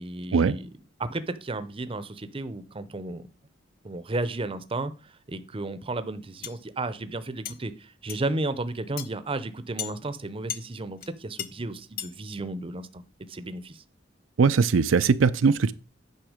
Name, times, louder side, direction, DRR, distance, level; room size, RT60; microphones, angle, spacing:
voice 1, 0.0-3.3 3.8-13.0 13.3-13.8, right 2 dB, 30° right, 0.6 m, -33 dB
sound 1, 6.4-6.6 7.4-7.6 8.1-8.3 9.0-9.1 9.8-9.9 10.5-10.7 11.0-11.1 11.4-11.5 12.0-12.1, left 10 dB, 50° left, 0.7 m, -34 dB
voice 2, 14.4-15.7, right 5 dB, 85° right, 0.5 m, -20 dB
9.2 x 5.8 x 5.0 m
head